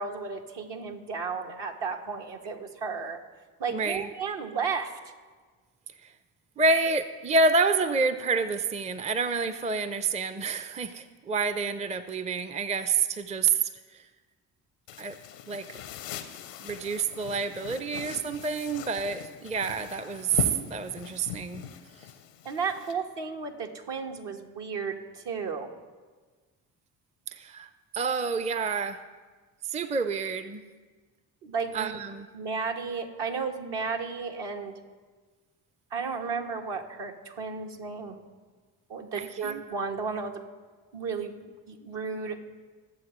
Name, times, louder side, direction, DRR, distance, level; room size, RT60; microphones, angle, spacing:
voice 1, 0.0-3.2 3.6-5.0 22.4-25.7 31.4-32.0 32.3-34.7 35.9-38.2 38.9-40.4 40.9-42.4, right 5 dB, 60° right, 3 dB, 1.3 m, -33 dB
voice 2, 3.7-4.1 6.0-6.1 6.6-14.1 15.0-15.2 15.5-15.8 16.6-21.6 27.3-27.7 27.9-29.0 29.6-30.6 31.7-32.3 39.2-39.6, right 4 dB, 15° right, 11 dB, 0.5 m, -28 dB
sound 1, 14.9-22.9, left 9 dB, 90° left, 0.8 m, -40 dB
21.5 x 7.5 x 3.1 m, 1.4 s
hypercardioid pair, 45°, 48 cm